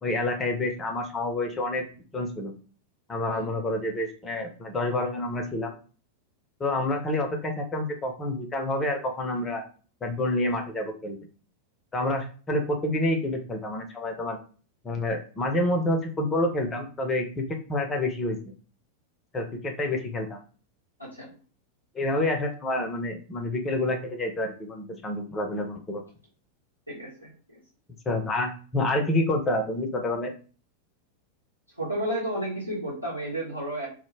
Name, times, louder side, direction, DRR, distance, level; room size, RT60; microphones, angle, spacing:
voice 1, 0.0-2.5 3.1-5.7 6.6-9.6 10.0-11.2 11.9-14.4 14.8-18.4 19.3-20.4 21.9-26.0 28.1-30.3, left 1 dB, 20° left, 4 dB, 0.6 m, -28 dB
voice 2, 21.0-21.3 26.9-27.6 31.8-33.9, right 1 dB, 90° right, -8 dB, 1.0 m, -32 dB
2.1 x 2.1 x 3.2 m, 0.39 s
figure-of-eight pair, 90°, 0 cm